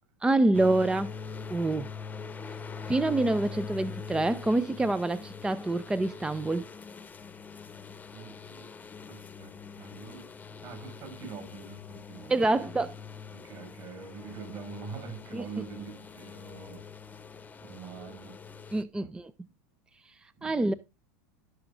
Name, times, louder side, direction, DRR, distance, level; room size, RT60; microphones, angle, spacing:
voice 1, 0.2-1.1 1.5-1.9 2.9-6.7 12.3-13.0 15.3-15.5 18.7-19.3 20.1-20.7, right 2 dB, 10° right, 0.4 m, -26 dB
sound 1, 0.5-18.8, left 5 dB, 15° left, 0.9 m, -43 dB
voice 2, 8.1-8.7 9.1-10.3 10.6-12.8 13.3-16.9 17.6-18.4 18.9-19.1 20.4-20.8, right 5 dB, 50° right, 6.7 m, -44 dB
17.0 x 6.0 x 2.5 m
hypercardioid pair, 110°, 9 cm